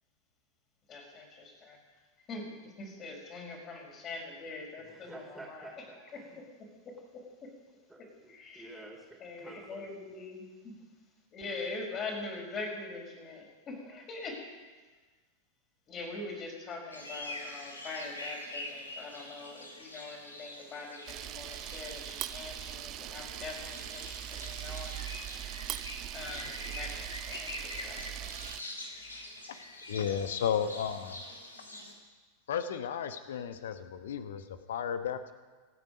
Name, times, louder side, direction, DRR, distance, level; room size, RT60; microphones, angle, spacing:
voice 1, 0.9-1.8 2.3-5.7 7.1-7.5 8.3-8.8 9.2-10.7 11.3-14.4 15.9-25.0 26.1-28.4, left 3 dB, 30° left, 1 dB, 5.1 m, -43 dB
voice 2, 4.8-6.4 7.9-10.0, right 2 dB, 5° right, 0 dB, 3.4 m, -50 dB
sound 1, 16.9-31.9, left 1 dB, 80° left, 2.7 m, -45 dB
Camera, 21.1-28.6, right 14 dB, 35° right, 0.4 m, -41 dB
voice 3, 29.9-31.2 32.5-35.3, left 8 dB, 60° left, 10 dB, 1.1 m, -33 dB
27.0 x 9.2 x 5.3 m, 1.4 s
figure-of-eight pair, 90°, 0 cm